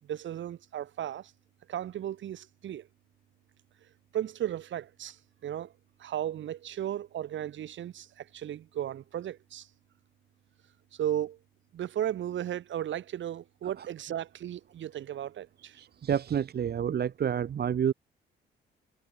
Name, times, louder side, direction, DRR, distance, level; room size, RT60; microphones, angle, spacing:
voice 1, 0.0-1.3 1.7-2.9 4.1-5.7 6.0-9.7 10.9-11.4 11.7-15.8, right 11 dB, 70° right, 5.0 m, -35 dB
voice 2, 15.8-17.9, right 8 dB, 55° right, 1.8 m, -29 dB
cardioid pair, 90°, 20 cm